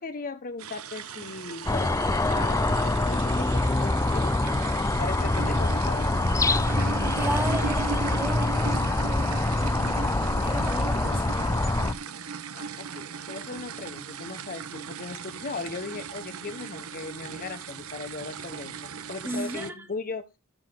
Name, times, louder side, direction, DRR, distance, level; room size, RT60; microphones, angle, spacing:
voice 1, 0.0-6.1 12.5-20.2, left 4 dB, 40° left, 0.8 m, -38 dB
sound 1, 0.6-19.7, right 6 dB, 70° right, 0.8 m, -37 dB
sound 2, 1.7-11.9, left 2 dB, 15° left, 0.5 m, -25 dB
voice 2, 7.2-11.5 19.2-19.8, right 1 dB, 10° right, 1.8 m, -35 dB
13.0 x 6.4 x 3.6 m
head